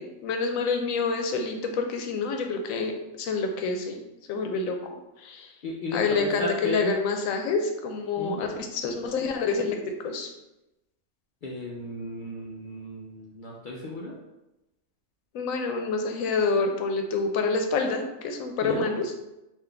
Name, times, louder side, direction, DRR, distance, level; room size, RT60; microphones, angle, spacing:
voice 1, 0.0-5.5 5.9-10.3 15.3-19.1, left 4 dB, 80° left, 4 dB, 1.0 m, -28 dB
voice 2, 5.6-7.0 8.2-8.4 11.4-14.2 18.6-18.9, left 1 dB, 65° left, -3 dB, 0.5 m, -34 dB
3.7 x 2.6 x 3.4 m, 0.95 s
omnidirectional pair, 1.4 m